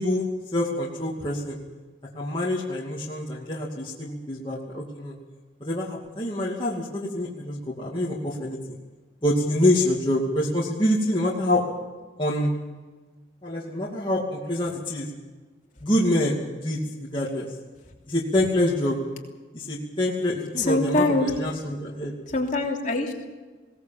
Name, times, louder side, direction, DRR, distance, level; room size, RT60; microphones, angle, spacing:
voice 1, 0.0-1.6 2.1-5.1 5.6-8.8 9.2-11.6 12.2-12.5 13.4-15.1 15.8-17.5 18.1-19.0 19.5-22.2, left 1 dB, 25° left, -5 dB, 2.5 m, -26 dB
voice 2, 20.7-21.3 22.3-23.3, left 2 dB, 40° left, 0 dB, 3.1 m, -23 dB
21.0 x 18.0 x 7.3 m, 1.3 s
head